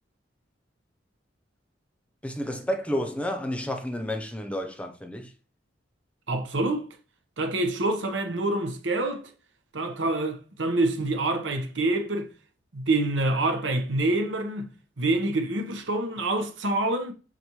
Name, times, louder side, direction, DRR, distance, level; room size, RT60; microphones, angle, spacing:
voice 1, 2.2-5.3, equal, 5° left, 0.8 m, -31 dB
voice 2, 6.3-6.9 7.4-9.3 9.7-12.3 12.7-17.1, right 2 dB, 80° right, 1.2 m, -26 dB
7.1 x 4.2 x 3.1 m
head